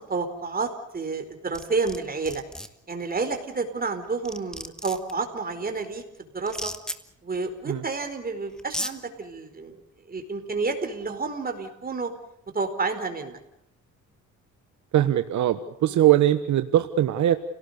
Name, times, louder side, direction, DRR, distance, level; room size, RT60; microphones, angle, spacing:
voice 1, 0.1-2.4 2.9-6.0 6.3-6.7 7.2-9.8 10.1-12.1 12.5-13.4 15.9-16.0, right 4 dB, 30° right, 6 dB, 4.7 m, -30 dB
sound 1, 1.5-2.0 2.2-2.7 3.9-4.0 4.2-5.1 6.5-7.0 8.1-8.2 8.6-8.9, equal, ahead, 2.0 m, -33 dB
voice 2, 14.9-17.4, right 12 dB, 70° right, 10 dB, 1.2 m, -21 dB
30.0 x 18.5 x 6.8 m, 0.78 s
cardioid pair, 90°, 30 cm